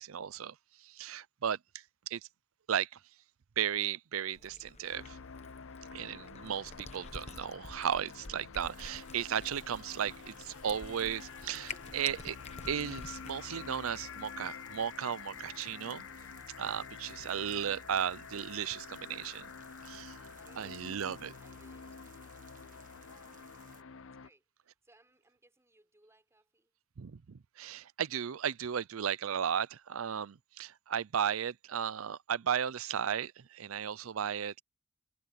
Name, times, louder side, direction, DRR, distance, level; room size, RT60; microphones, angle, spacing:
voice 1, 0.0-1.6 2.1-2.2 2.7-2.9 3.6-5.2 5.9-12.4 12.7-16.1 16.6-19.5 19.8-20.3 20.6-21.3 27.0-34.6, right 8 dB, 75° right, 0.5 m, -35 dB
Cat, 4.3-13.3, left 3 dB, 30° left, 1.2 m, -49 dB
sound 1, 4.9-24.3, left 6 dB, 65° left, 0.6 m, -48 dB
sound 2, 8.6-23.8, right 7 dB, 40° right, 1.3 m, -60 dB
voice 2, 20.4-22.3 23.0-23.5 24.2-26.7, right 1 dB, 15° right, 5.2 m, -67 dB
head